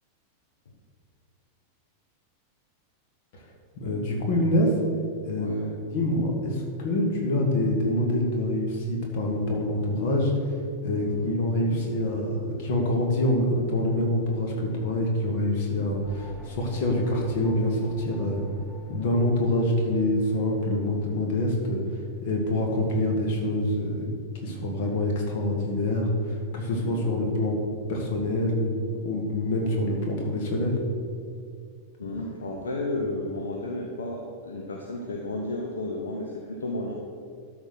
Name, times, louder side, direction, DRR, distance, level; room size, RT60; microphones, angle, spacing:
voice 1, 3.8-4.8 5.3-5.5 5.9-10.6 10.8-18.4 18.9-24.1 24.4-27.6 27.9-28.8 29.0-30.8, left 1 dB, 50° left, 1 dB, 2.0 m, -26 dB
voice 2, 5.4-5.7 11.0-11.3 26.8-27.1 32.0-36.9, left 2 dB, 65° left, 0 dB, 0.9 m, -33 dB
sound 1, 16.0-21.1, equal, 10° left, 1.3 m, -48 dB
12.5 x 4.4 x 6.0 m, 2.3 s
figure-of-eight pair, 90°, 0 cm